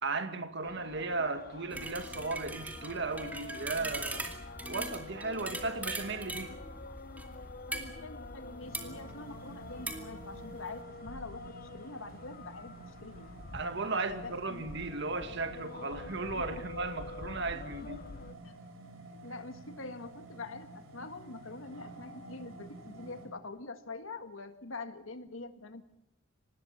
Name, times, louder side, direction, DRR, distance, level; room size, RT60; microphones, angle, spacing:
voice 1, 0.0-4.3 4.6-6.5 13.5-18.1, right 3 dB, 60° right, 2.1 m, -36 dB
sound 1, 0.6-18.3, left 3 dB, 45° left, 0.8 m, -47 dB
sound 2, 1.7-10.8, right 2 dB, 10° right, 2.4 m, -42 dB
voice 2, 7.7-11.4 11.7-13.3 13.9-14.8 16.0-16.6 18.4-18.6 19.1-25.8, left 3 dB, 75° left, 1.8 m, -45 dB
sound 3, 8.6-23.3, right 2 dB, 85° right, 6.3 m, -51 dB
25.0 x 19.5 x 7.3 m
head